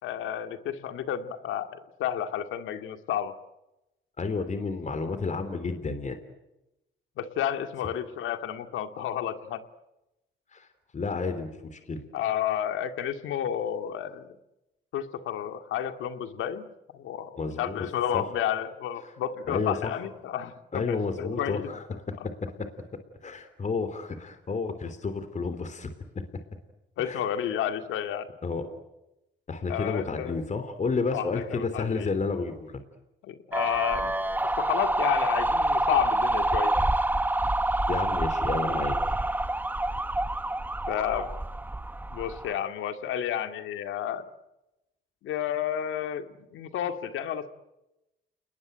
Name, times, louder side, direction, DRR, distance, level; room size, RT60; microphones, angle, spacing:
voice 1, 0.0-3.3 7.2-9.6 12.1-14.4 14.9-16.7 16.9-22.0 27.0-28.3 29.7-30.4 31.1-32.1 33.2-34.1 34.6-36.8 40.9-41.3 42.1-44.2 45.2-47.5, left 10 dB, 85° left, 8 dB, 2.2 m, -31 dB
voice 2, 4.2-6.2 10.5-10.7 10.9-12.0 17.4-17.8 18.1-18.2 19.5-20.0 20.7-21.8 22.2-22.7 23.2-25.9 27.0-27.2 28.4-28.6 29.5-32.8 37.9-38.9, left 4 dB, 35° left, 10 dB, 3.4 m, -31 dB
sound 1, 33.5-42.5, right 1 dB, 10° right, 0.9 m, -27 dB
29.5 x 20.5 x 9.1 m, 0.95 s
cardioid pair, 90°, 20 cm